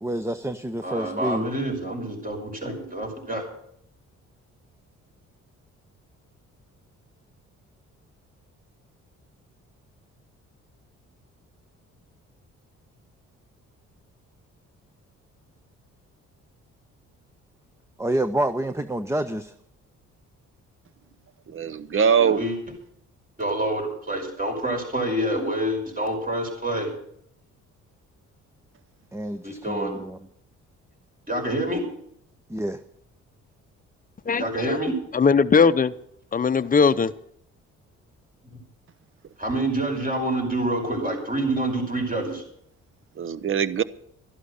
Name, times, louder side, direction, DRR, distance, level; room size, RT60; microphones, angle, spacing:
voice 1, 0.0-1.4 18.0-19.5 29.1-30.2 32.5-32.8, right 1 dB, 10° right, 11 dB, 0.7 m, -28 dB
voice 2, 0.8-3.4 21.9-22.6 23.4-26.9 29.4-30.0 31.3-31.8 34.4-34.9 39.4-42.4, right 1 dB, 30° right, 3 dB, 5.5 m, -27 dB
voice 3, 21.5-22.4 43.2-43.8, right 7 dB, 45° right, 16 dB, 0.9 m, -22 dB
voice 4, 34.3-34.8 35.1-35.9 36.3-37.1, left 5 dB, 30° left, 13 dB, 0.7 m, -19 dB
12.5 x 11.5 x 6.6 m, 0.70 s
cardioid pair, 90°, 30 cm